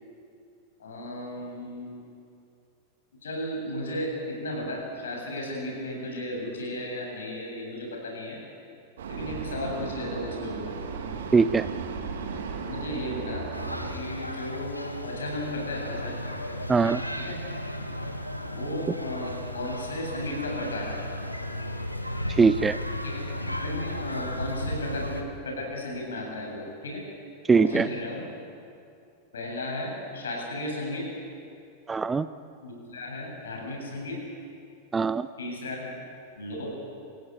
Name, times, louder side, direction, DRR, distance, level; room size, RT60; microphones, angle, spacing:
voice 1, 0.8-2.0 3.2-8.4 9.1-10.7 12.3-12.4 12.7-13.5 13.9-14.8 15.0-16.2 17.2-17.4 18.4-21.0 23.0-23.2 23.6-27.0 27.6-28.2 29.3-31.1 32.6-34.2 35.4-36.0 36.4-36.7, left 1 dB, 65° left, 0 dB, 7.9 m, -34 dB
Vehicle, 9.0-14.0, right 4 dB, 60° right, 2.5 m, -35 dB
voice 2, 11.3-11.7 16.7-17.0 22.3-22.8 27.5-27.9 31.9-32.3 34.9-35.3, right 5 dB, 15° right, 14 dB, 0.6 m, -21 dB
sound 1, 13.5-25.2, left 1 dB, 90° left, 1.7 m, -34 dB
27.0 x 15.5 x 9.7 m, 2.5 s
figure-of-eight pair, 90°, 0 cm